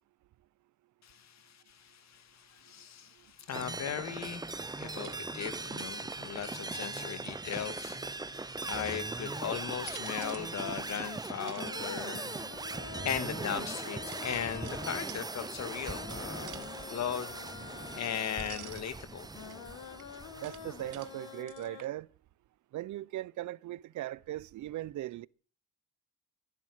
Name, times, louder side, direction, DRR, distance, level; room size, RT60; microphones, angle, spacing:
voice 1, 1.0-12.3 13.0-17.3 17.9-19.3, left 9 dB, 60° left, 2.0 m, -38 dB
sound 1, 3.5-21.4, right 3 dB, 15° right, 0.7 m, -40 dB
sound 2, 4.9-8.1 8.7-9.4 9.7-13.4 14.1-15.3 15.7-16.8 17.1-18.1 18.4-18.9 19.5-21.1 21.5-21.9, right 15 dB, 90° right, 1.2 m, -53 dB
sound 3, 11.7-21.8, left 9 dB, 80° left, 1.8 m, -48 dB
voice 2, 20.4-22.1 22.7-25.3, right 14 dB, 75° right, 0.8 m, -39 dB
15.0 x 11.5 x 6.5 m
cardioid pair, 90°, 30 cm